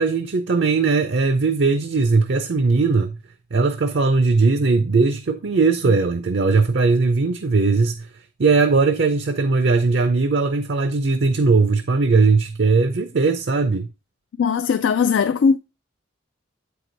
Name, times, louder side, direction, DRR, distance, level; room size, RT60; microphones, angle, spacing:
voice 1, 0.0-3.2 3.5-8.1 8.4-13.9, right 4 dB, 60° right, 0.5 m, -19 dB
voice 2, 14.4-15.6, left 6 dB, 75° left, 0.3 m, -19 dB
8.1 x 4.7 x 3.9 m
head